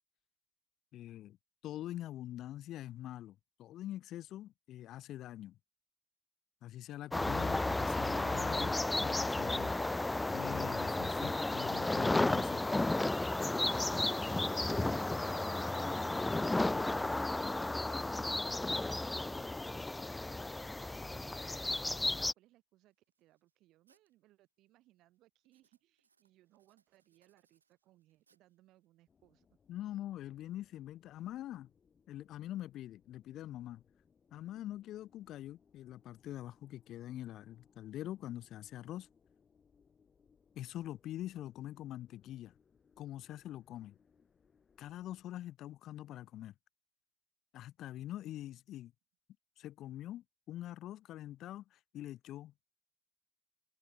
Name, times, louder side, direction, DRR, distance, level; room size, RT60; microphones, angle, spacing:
voice 1, 0.9-1.4 1.6-5.6 6.6-12.6 29.7-31.7 32.1-33.8 34.3-39.1 40.5-42.5 43.0-44.0 44.8-46.5 47.5-48.9 49.6-52.7, left 13 dB, 60° left, 1.1 m, -44 dB
sound 1, 7.1-22.3, left 2 dB, 15° left, 0.5 m, -33 dB
Writing, 17.8-22.3 22.9-24.1 24.4-24.9 25.4-28.9, right 5 dB, 85° right, 6.8 m, -77 dB
voice 2, 18.2-20.6 21.1-29.5 48.2-48.3, right 16 dB, 60° right, 4.9 m, -67 dB
sound 2, 29.1-45.2, left 6 dB, 40° left, 7.6 m, -71 dB
figure-of-eight pair, 45°, 0 cm